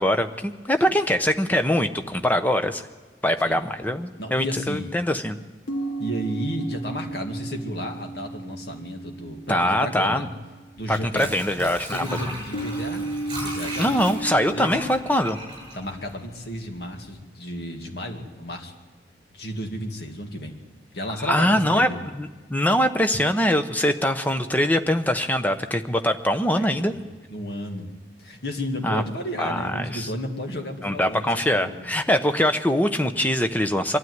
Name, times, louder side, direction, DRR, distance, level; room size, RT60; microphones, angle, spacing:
voice 1, 0.0-2.8 3.2-5.4 9.5-10.3 10.9-12.3 13.8-15.4 21.2-26.9 28.8-29.0 29.4-30.1 30.8-34.0, equal, 10° left, 8 dB, 0.8 m, -23 dB
sound 1, 4.2-4.3 5.7-11.1 12.5-14.7, right 2 dB, 85° left, 3.0 m, -34 dB
voice 2, 4.2-5.0 6.0-10.3 10.8-11.3 11.8-13.1 13.3-13.9 14.5-14.7 15.7-18.7 19.3-20.6 20.9-22.0 26.5-27.0 27.3-27.9 28.2-31.9, equal, 60° left, 3 dB, 2.1 m, -33 dB
Water / Sink (filling or washing), 10.8-16.6 17.0-17.1, right 1 dB, 25° right, 7.5 m, -36 dB
23.5 x 12.5 x 9.5 m, 1.3 s
head